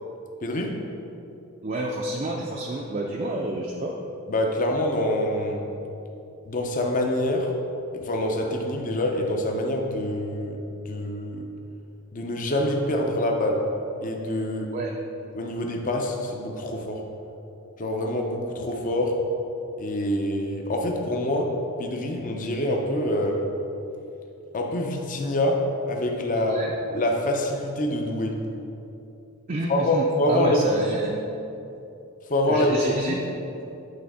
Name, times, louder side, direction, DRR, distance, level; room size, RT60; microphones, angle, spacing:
voice 1, 0.4-0.7 4.3-5.6 6.5-7.5 7.9-10.6 10.9-11.5 12.1-13.6 14.0-14.7 15.3-17.0 17.8-19.2 19.8-21.5 21.8-23.4 24.5-28.4 29.7-30.6 30.9-31.0 32.3-33.2, left 1 dB, 35° left, 1 dB, 0.6 m, -26 dB
voice 2, 1.6-3.9 14.7-14.9 26.3-26.7 29.5-31.2 32.5-33.2, right 1 dB, 35° right, -2 dB, 0.4 m, -29 dB
8.5 x 3.6 x 4.7 m, 2.9 s
head